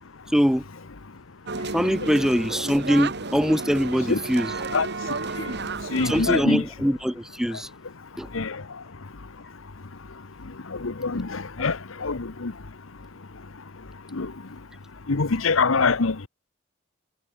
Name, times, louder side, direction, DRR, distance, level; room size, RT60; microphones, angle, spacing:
voice 1, 0.3-0.6 1.7-4.5 6.0-7.7 8.2-8.3, equal, ahead, 1.5 m, -23 dB
sound 1, 1.5-6.5, right 3 dB, 60° right, 2.1 m, -32 dB
voice 2, 5.9-6.6 8.3-8.6 10.7-12.5 14.1-14.3 15.1-16.2, left 4 dB, 75° left, 1.0 m, -24 dB
head